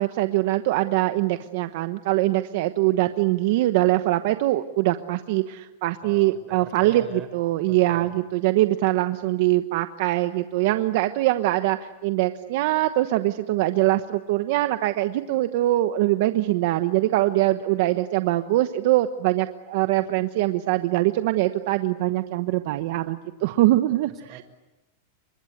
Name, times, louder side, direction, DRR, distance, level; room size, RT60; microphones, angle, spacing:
voice 1, 0.0-24.4, right 16 dB, 55° right, 9 dB, 1.1 m, -23 dB
voice 2, 6.0-7.3 7.7-8.1 23.4-23.5 24.3-24.4, right 8 dB, 25° right, 9 dB, 4.0 m, -42 dB
29.0 x 24.5 x 8.2 m, 1.1 s
supercardioid pair, 155°, 0 cm